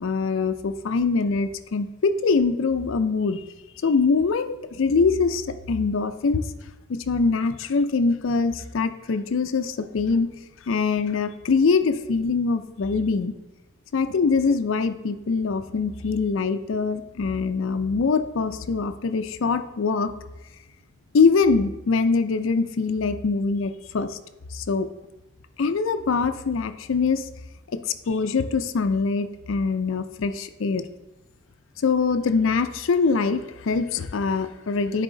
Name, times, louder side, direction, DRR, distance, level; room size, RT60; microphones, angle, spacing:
voice 1, 0.0-3.4 3.8-6.5 6.9-10.3 10.7-13.3 13.9-20.1 21.1-24.2 24.5-24.9 25.6-27.3 27.7-27.8 28.1-30.9 31.8-35.0, left 4 dB, 70° left, 10 dB, 0.4 m, -23 dB
9.9 x 4.1 x 3.8 m, 1.0 s
head